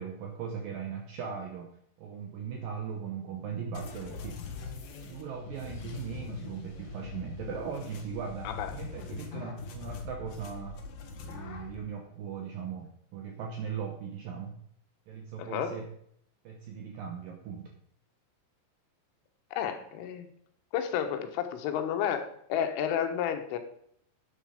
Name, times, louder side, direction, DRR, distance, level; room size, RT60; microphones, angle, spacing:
voice 1, 0.0-1.7 2.0-4.6 5.1-10.8 11.2-14.6 15.1-15.9 16.4-17.7, right 6 dB, 90° right, 3 dB, 2.0 m, -39 dB
sound 1, 3.7-11.8, left 5 dB, 60° left, 2.7 m, -42 dB
voice 2, 15.4-15.8 19.5-20.3 20.7-23.6, left 9 dB, 80° left, 7 dB, 3.7 m, -31 dB
11.0 x 9.4 x 5.1 m, 0.68 s
omnidirectional pair, 5.6 m